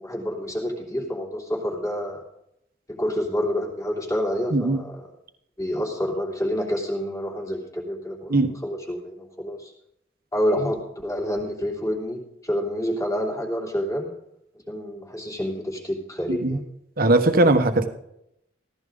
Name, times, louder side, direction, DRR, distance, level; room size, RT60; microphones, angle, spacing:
voice 1, 0.0-2.2 2.9-5.0 5.6-9.7 10.3-14.1 14.7-16.6, equal, 20° left, -1 dB, 3.2 m, -28 dB
voice 2, 4.5-4.8 8.3-8.5 16.3-16.6 17.0-17.9, right 2 dB, 55° right, 8 dB, 1.3 m, -19 dB
16.0 x 14.5 x 4.0 m, 0.78 s
head